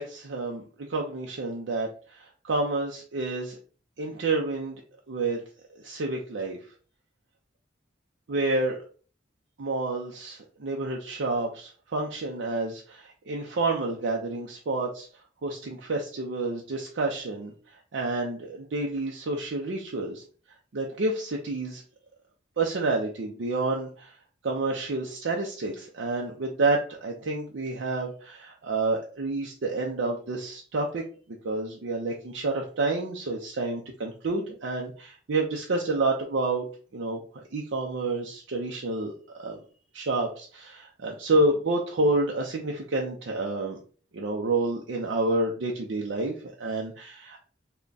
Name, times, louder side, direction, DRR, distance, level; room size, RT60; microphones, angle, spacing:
voice 1, 0.0-3.6 4.0-4.8 5.1-5.4 5.8-6.6 8.3-8.8 9.6-15.1 15.4-17.5 17.9-20.2 20.7-21.8 22.6-24.1 24.4-31.0 31.4-36.7 36.9-37.2 37.5-39.6 39.9-43.8 44.1-47.4, right 2 dB, 75° right, 0 dB, 0.5 m, -29 dB
3.4 x 2.2 x 3.8 m, 0.41 s
head